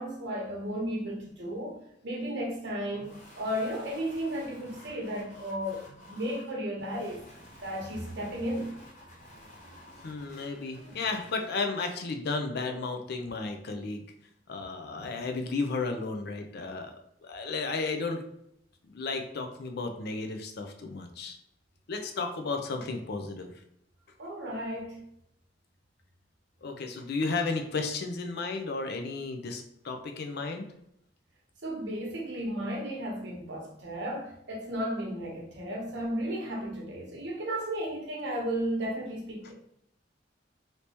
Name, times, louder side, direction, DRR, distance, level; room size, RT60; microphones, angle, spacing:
voice 1, 0.0-1.7 2.0-7.2 7.6-8.7 15.0-15.1 24.2-25.0 31.6-39.5, equal, 65° right, -1 dB, 0.9 m, -34 dB
sound 1, 2.9-11.6, left 1 dB, 40° left, 1.1 m, -52 dB
voice 2, 10.0-14.0 14.5-16.9 17.2-18.2 18.8-21.4 21.9-23.5 26.6-30.7, left 3 dB, 60° left, 5 dB, 0.5 m, -33 dB
3.3 x 2.8 x 2.9 m, 0.75 s
head